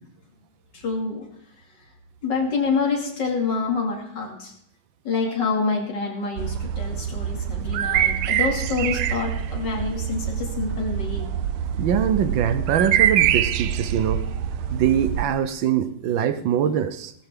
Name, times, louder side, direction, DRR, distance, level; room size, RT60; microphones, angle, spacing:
voice 1, 0.7-1.3 2.2-4.5 5.0-11.3, left 4 dB, 55° left, 0 dB, 3.3 m, -27 dB
sound 1, 6.4-15.2, right 10 dB, 85° right, 1.6 m, -25 dB
voice 2, 11.8-14.2 14.7-17.1, right 8 dB, 70° right, 12 dB, 1.4 m, -23 dB
16.0 x 14.0 x 3.6 m, 0.71 s
omnidirectional pair, 2.3 m